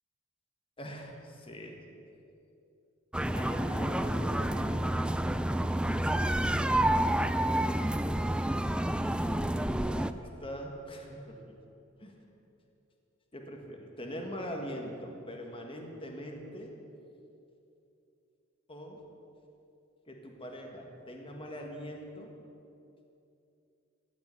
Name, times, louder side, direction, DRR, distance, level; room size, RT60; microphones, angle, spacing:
voice 1, 0.8-2.0 3.3-5.6 9.9-11.4 12.0-12.2 13.3-16.7 18.7-19.0 20.1-22.3, equal, 25° left, 1 dB, 1.7 m, -42 dB
sound 1, 3.1-10.1, right 1 dB, 5° right, 0.3 m, -29 dB
16.0 x 6.0 x 9.8 m, 2.7 s
head